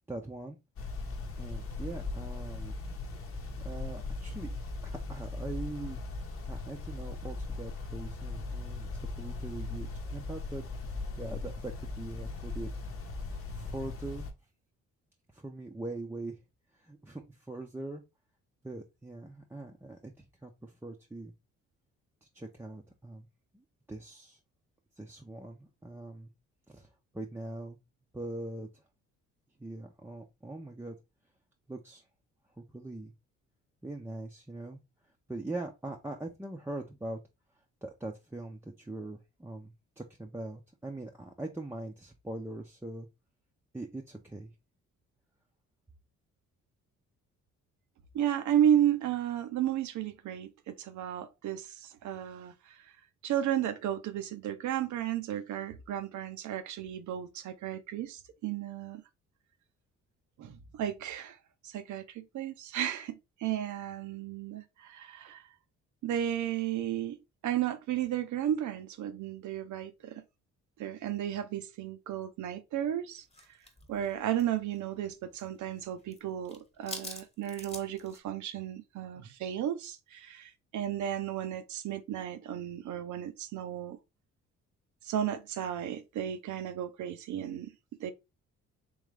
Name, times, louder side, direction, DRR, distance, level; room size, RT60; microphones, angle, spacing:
voice 1, 0.1-0.6 1.4-2.8 3.6-4.5 4.8-6.0 6.5-12.8 13.5-14.3 15.3-16.4 16.8-18.0 18.6-20.1 20.4-21.3 22.3-23.3 23.5-24.4 25.0-26.3 26.7-26.9 27.1-27.8 28.1-28.7 29.6-31.0 31.7-32.0 32.6-33.1 33.8-34.8 35.3-37.2 37.8-43.1 43.7-44.5, right 2 dB, 10° right, 0.6 m, -42 dB
sound 1, 0.8-14.3, left 3 dB, 45° left, 0.9 m, -39 dB
voice 2, 48.1-52.7 53.2-59.0 60.4-61.4 61.6-65.5 66.0-67.2 67.4-70.2 70.8-73.2 73.9-84.0 85.0-87.7 88.0-88.1, right 10 dB, 75° right, 0.7 m, -33 dB
sound 2, 73.3-75.5 75.7-76.2 76.4-78.2, left 2 dB, 20° left, 1.3 m, -46 dB
3.6 x 3.2 x 3.2 m
cardioid pair, 90°, 30 cm